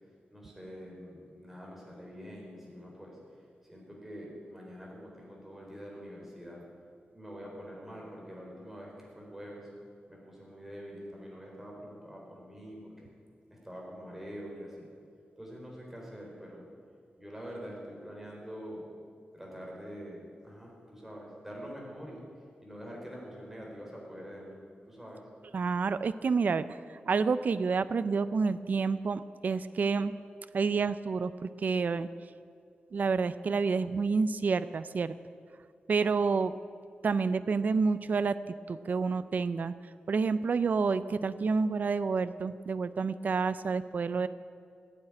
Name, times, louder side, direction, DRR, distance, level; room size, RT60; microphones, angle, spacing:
voice 1, 0.3-3.2 3.7-6.6 7.1-9.7 10.1-13.1 13.5-14.9 15.4-16.7 17.2-18.8 19.3-22.3 22.6-24.6 24.9-25.2, equal, 5° right, -2 dB, 4.0 m, -45 dB
voice 2, 25.5-30.1 30.5-32.1 32.9-35.1 35.9-36.5 37.0-38.4 38.7-39.7 40.1-44.3, right 4 dB, 50° right, 13 dB, 0.4 m, -29 dB
16.5 x 9.0 x 9.5 m, 2.3 s
wide cardioid pair, 155°, 4 cm